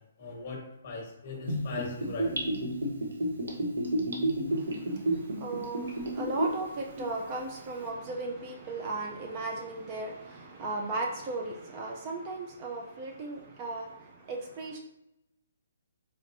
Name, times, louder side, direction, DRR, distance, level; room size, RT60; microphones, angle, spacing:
voice 1, 0.2-2.3, left 3 dB, 35° left, -1 dB, 1.3 m, -38 dB
Gurgling / Bathtub (filling or washing), 1.5-6.6 7.0-7.1, right 1 dB, 70° right, 0.9 m, -30 dB
voice 2, 4.5-14.8, right 2 dB, 25° right, 0 dB, 0.4 m, -36 dB
4.1 x 3.1 x 2.6 m, 0.86 s
hypercardioid pair, 165°, 0 cm